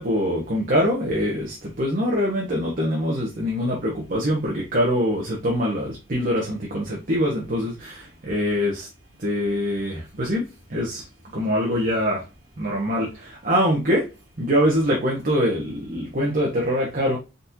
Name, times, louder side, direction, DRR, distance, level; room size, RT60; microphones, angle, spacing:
voice 1, 0.0-8.9 9.2-11.0 11.3-12.2 12.6-14.1 14.4-17.2, equal, 45° right, 1.2 m, -24 dB
4.2 x 4.0 x 2.8 m
head